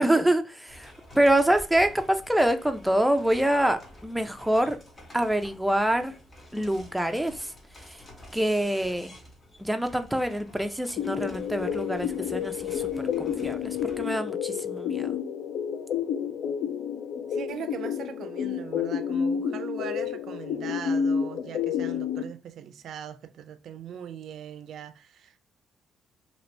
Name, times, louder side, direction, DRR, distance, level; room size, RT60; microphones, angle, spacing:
voice 1, 0.0-4.8 5.1-6.1 6.5-8.0 8.3-9.1 9.6-15.2, right 1 dB, 5° right, 0.4 m, -26 dB
sound 1, 0.7-14.2, left 1 dB, 35° left, 1.3 m, -49 dB
sound 2, 11.0-22.2, left 7 dB, 80° left, 0.4 m, -30 dB
voice 2, 17.3-25.4, right 8 dB, 70° right, 0.4 m, -40 dB
2.9 x 2.7 x 3.2 m
cardioid pair, 90°, 0 cm